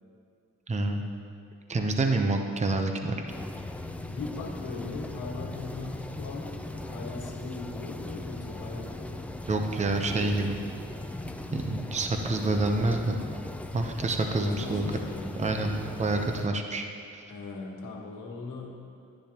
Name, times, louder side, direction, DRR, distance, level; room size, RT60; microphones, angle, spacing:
voice 1, 0.7-1.0 1.7-3.2 9.5-10.6 11.5-13.2 13.7-14.8 15.4-15.7 16.0-16.9, right 2 dB, 20° right, 4 dB, 0.7 m, -27 dB
sound 1, 3.3-16.5, left 2 dB, 5° left, 0.4 m, -38 dB
voice 2, 4.0-9.3 14.3-15.5 17.3-18.7, left 3 dB, 75° left, 0 dB, 1.6 m, -39 dB
12.0 x 10.5 x 2.9 m, 2.5 s
cardioid pair, 105°, 31 cm